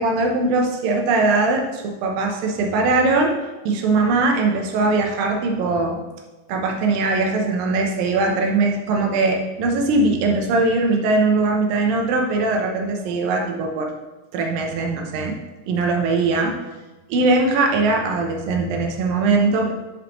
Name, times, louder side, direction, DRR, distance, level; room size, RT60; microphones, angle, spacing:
voice 1, 0.0-3.3 3.7-6.0 6.5-13.9 14.3-15.3 15.7-16.6 17.1-19.7, right 3 dB, 85° right, 2 dB, 2.7 m, -20 dB
11.5 x 4.9 x 3.1 m, 1.1 s
omnidirectional pair, 4.0 m